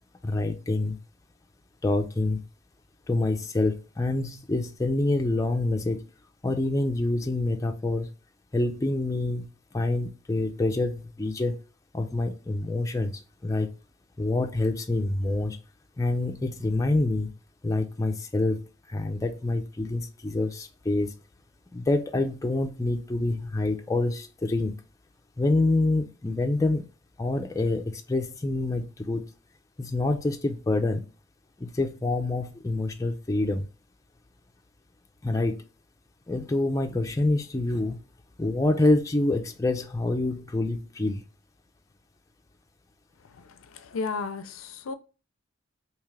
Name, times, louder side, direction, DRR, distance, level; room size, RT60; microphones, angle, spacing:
voice 1, 0.2-1.0 1.8-2.4 3.1-6.1 6.4-8.1 8.5-9.5 9.7-11.6 11.9-13.1 13.4-13.7 14.2-15.6 16.0-17.3 17.6-18.6 18.9-21.1 21.7-24.8 25.4-26.8 27.2-29.3 29.8-31.0 31.6-33.7 35.2-35.6 36.3-38.0 38.4-41.2, left 2 dB, 15° left, 0.4 m, -26 dB
voice 2, 43.2-44.9, left 4 dB, 90° left, 0.5 m, -34 dB
3.5 x 2.9 x 3.2 m
head